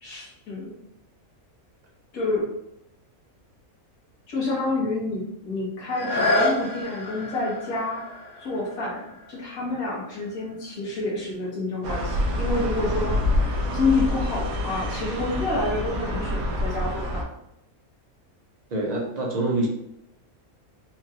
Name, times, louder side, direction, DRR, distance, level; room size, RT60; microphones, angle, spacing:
voice 1, 0.0-0.7 2.1-2.4 4.3-8.0 8.4-17.3, left 3 dB, 75° left, -5 dB, 1.7 m, -28 dB
sound 1, 5.9-11.5 12.1-12.2, left 1 dB, 55° left, 0.5 m, -30 dB
sound 2, 11.8-17.2, left 1 dB, 80° right, 1.2 m, -27 dB
voice 2, 18.7-19.7, right 2 dB, 40° right, -1 dB, 0.6 m, -25 dB
4.4 x 2.4 x 2.9 m, 0.81 s
omnidirectional pair, 1.5 m